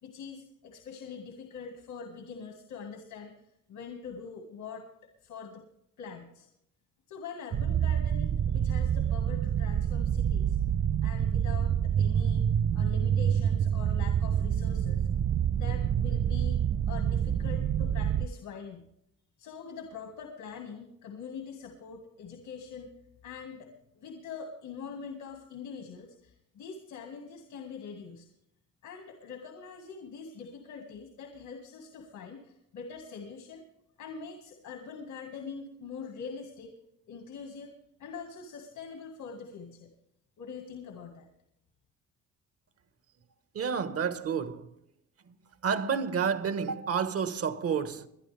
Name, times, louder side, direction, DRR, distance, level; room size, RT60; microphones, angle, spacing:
voice 1, 0.0-3.4 3.7-4.9 5.2-5.6 6.0-6.5 7.1-10.6 11.0-12.5 12.7-15.1 15.5-16.6 16.9-18.8 19.4-22.9 23.2-28.3 28.8-33.6 34.0-36.7 37.1-39.9 40.4-41.3, left 5 dB, 80° left, 2.0 m, -43 dB
sound 1, 7.5-18.3, right 9 dB, 35° right, 0.4 m, -27 dB
voice 2, 43.5-44.7 45.2-45.3 45.6-48.1, right 6 dB, 50° right, 1.4 m, -30 dB
22.5 x 11.5 x 3.4 m
cardioid pair, 90°, 30 cm